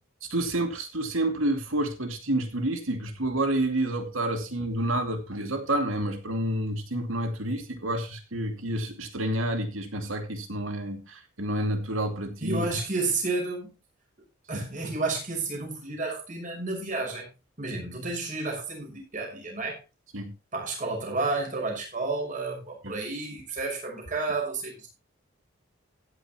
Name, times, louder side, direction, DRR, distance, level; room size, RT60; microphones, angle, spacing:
voice 1, 0.3-12.8 14.5-14.6 20.1-20.4 22.8-23.0, right 1 dB, 90° right, 2.5 m, -29 dB
voice 2, 12.4-13.7 14.5-17.3 17.6-19.8 20.5-24.9, right 3 dB, 40° right, 6.1 m, -31 dB
16.0 x 9.7 x 3.1 m
head